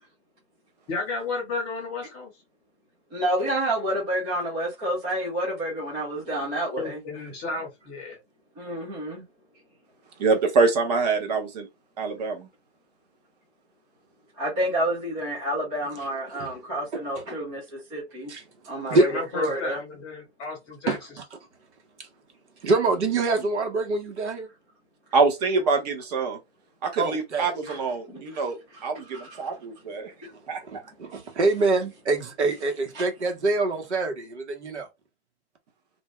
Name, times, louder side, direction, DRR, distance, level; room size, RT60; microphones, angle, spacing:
voice 1, 0.9-2.3 6.8-8.2 18.9-21.0, left 3 dB, 15° left, 0.8 m, -32 dB
voice 2, 3.1-7.0 8.6-9.2 14.4-18.3 18.7-19.8 27.7-27.8 28.1-28.2 29.1-29.4 31.1-31.2, right 1 dB, 10° right, 0.4 m, -29 dB
voice 3, 10.2-11.7 12.0-12.5 25.1-26.4 26.8-28.6 28.8-30.1 30.5-30.6, right 4 dB, 35° right, 0.9 m, -25 dB
voice 4, 22.6-24.5 27.0-27.5 30.6-34.9, right 3 dB, 80° right, 1.2 m, -25 dB
2.6 x 2.2 x 3.0 m
hypercardioid pair, 155°, 34 cm